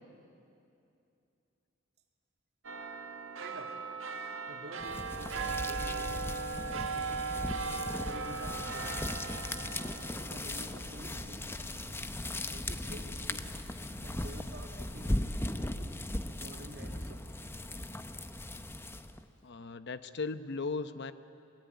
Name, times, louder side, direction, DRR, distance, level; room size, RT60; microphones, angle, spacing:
sound 1, 2.6-13.4 13.8-13.9, right 5 dB, 80° right, 1.4 m, -39 dB
voice 1, 3.4-3.8 4.5-6.3 6.7-7.3 8.0-9.1 10.3-11.5 12.4-13.5 14.0-15.3 16.4-17.4, right 1 dB, 55° right, 3 dB, 2.6 m, -50 dB
sound 2, 4.8-19.2, left 1 dB, 10° left, 0.8 m, -38 dB
voice 2, 19.4-21.1, left 4 dB, 60° left, 11 dB, 0.9 m, -37 dB
27.0 x 21.0 x 9.4 m, 2.6 s
head